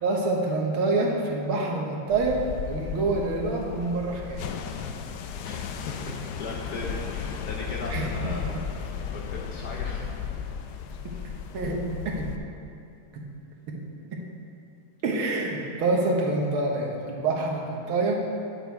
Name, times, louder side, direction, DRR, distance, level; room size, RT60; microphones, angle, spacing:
voice 1, 0.0-2.4 2.7-4.5 7.9-8.3 11.1-11.2 11.5-12.3 13.1-13.2 13.7-13.8 14.1-14.2 15.0-18.2, right 3 dB, 70° right, 0 dB, 1.9 m, -27 dB
sound 1, 2.1-12.4, left 7 dB, 85° left, 0.8 m, -35 dB
voice 2, 5.4-10.2 11.1-11.3, left 2 dB, 60° left, -1 dB, 1.1 m, -38 dB
8.9 x 8.4 x 4.5 m, 2.6 s
omnidirectional pair, 2.4 m